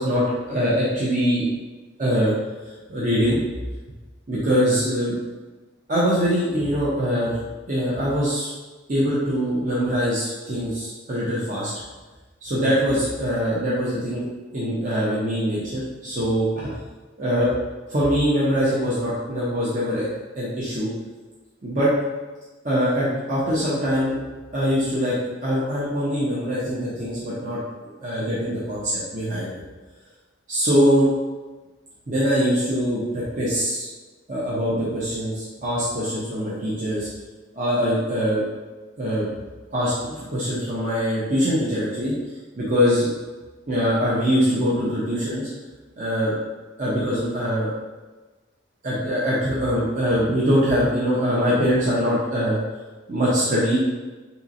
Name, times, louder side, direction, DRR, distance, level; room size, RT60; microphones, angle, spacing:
voice 1, 0.0-1.5 2.0-2.3 2.9-3.4 4.3-5.2 5.9-7.4 7.7-8.5 8.9-11.7 12.4-14.2 14.5-16.7 17.2-17.5 17.9-20.1 20.3-20.9 21.6-21.9 22.6-24.2 24.5-25.1 25.4-29.5 30.5-31.2 32.1-33.9 34.3-37.1 37.5-38.4 39.0-39.3 39.7-42.1 42.6-43.1 43.7-45.5 46.0-46.3 46.8-47.7 48.8-52.6 53.1-53.8, equal, 40° right, -8 dB, 0.6 m, -23 dB
3.9 x 3.0 x 2.5 m, 1.2 s
head